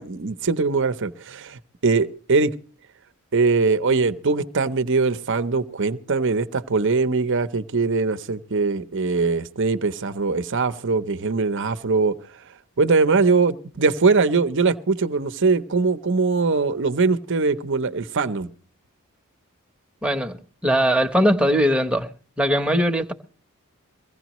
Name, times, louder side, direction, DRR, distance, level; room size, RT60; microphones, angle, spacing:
voice 1, 0.0-2.5 3.3-12.1 12.8-18.5, right 4 dB, 55° right, 0.8 m, -21 dB
voice 2, 20.0-20.4 20.6-22.1 22.4-23.1, equal, 5° right, 0.9 m, -20 dB
22.5 x 16.0 x 3.0 m
head